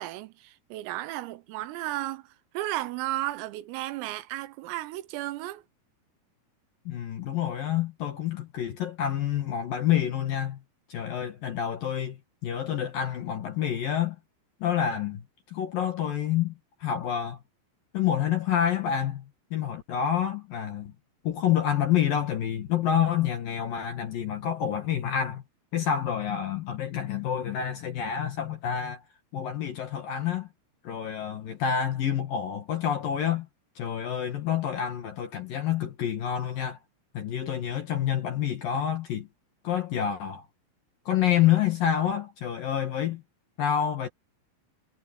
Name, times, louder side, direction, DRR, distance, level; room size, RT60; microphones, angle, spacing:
voice 1, 0.0-2.2 2.6-5.6, right 16 dB, 85° right, 3.7 m, -34 dB
voice 2, 6.9-10.6 10.9-14.2 14.6-16.5 16.8-17.4 17.9-20.9 21.2-25.4 25.7-29.0 29.3-30.5 30.8-33.5 33.8-36.8 37.1-39.3 39.6-40.5 41.1-43.2 43.6-44.1, left 9 dB, 60° left, 2.5 m, -28 dB
omnidirectional pair, 6.0 m